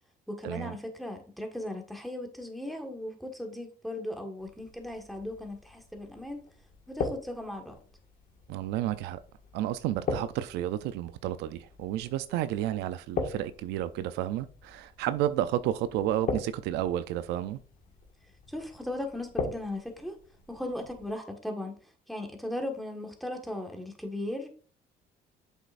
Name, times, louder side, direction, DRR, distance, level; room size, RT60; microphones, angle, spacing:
voice 1, 0.3-6.4 6.9-7.7 18.5-20.2 20.5-21.8 22.1-24.5, left 1 dB, ahead, 1.6 m, -37 dB
sound 1, 4.4-21.1, left 4 dB, 55° left, 1.8 m, -41 dB
voice 2, 8.5-9.2 9.5-17.6, right 12 dB, 90° right, 0.5 m, -31 dB
7.9 x 6.5 x 2.6 m
cardioid pair, 110°, 17 cm